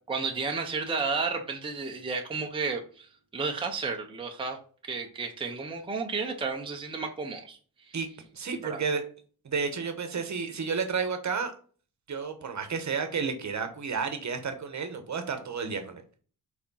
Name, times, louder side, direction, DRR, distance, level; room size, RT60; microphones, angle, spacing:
voice 1, 0.1-4.6 4.9-8.0 8.6-8.8, right 4 dB, 15° right, 0.7 m, -32 dB
voice 2, 8.3-9.0 9.4-11.5 12.1-16.0, right 5 dB, 45° right, 1.1 m, -31 dB
4.9 x 4.3 x 5.5 m
wide cardioid pair, 145°, 38 cm